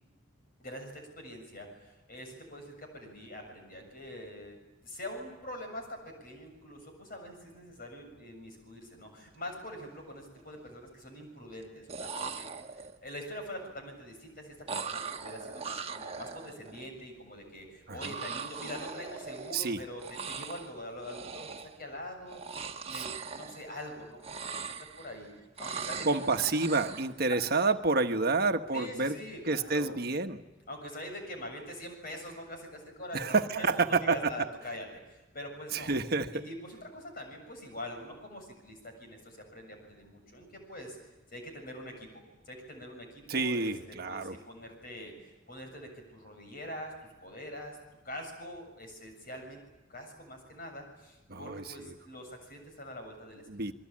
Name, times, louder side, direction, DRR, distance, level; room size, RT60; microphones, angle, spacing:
voice 1, 0.6-4.6 4.8-21.5 21.8-24.6 25.0-25.3 25.6-26.2 28.2-28.4 28.7-29.9 30.7-33.2 33.6-35.9 36.3-41.0 41.3-42.1 42.5-46.9 47.2-47.8 48.0-49.6 49.9-53.4, left 1 dB, 50° left, 3 dB, 7.2 m, -44 dB
sound 1, 9.6-9.7 10.0-10.6 11.6-11.7 11.9-13.1 14.7-16.9 18.0-19.7 20.0-20.7 21.0-21.8 22.3-23.9 24.2-25.2 25.6-27.1, right 5 dB, 30° right, 1.2 m, -40 dB
voice 2, 26.0-29.2 29.5-30.4 33.1-34.3 35.7-36.5 43.3-44.4 51.3-51.6 53.5-53.8, right 3 dB, 50° right, 7 dB, 1.3 m, -29 dB
27.0 x 22.5 x 8.7 m, 1.0 s
head